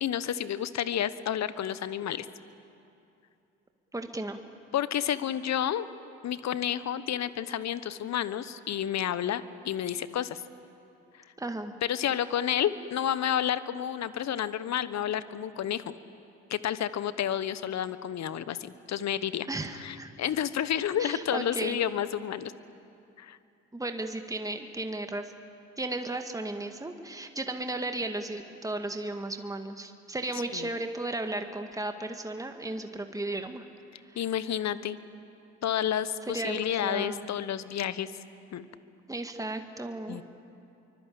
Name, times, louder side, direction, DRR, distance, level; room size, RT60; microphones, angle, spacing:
voice 1, 0.0-2.3 4.7-5.9 6.2-10.4 11.8-15.9 16.5-19.5 19.8-22.5 23.2-23.4 30.5-30.7 34.1-35.0 35.6-38.1 38.5-38.7 40.1-40.2, left 10 dB, 50° left, 15 dB, 1.2 m, -30 dB
voice 2, 3.9-4.4 11.4-11.7 19.5-20.1 21.0-21.8 23.7-25.3 25.8-33.6 34.1-34.3 36.3-37.3 39.1-40.2, right 2 dB, 10° right, 6 dB, 2.0 m, -35 dB
27.0 x 23.5 x 8.7 m, 2.7 s
hypercardioid pair, 50°, 34 cm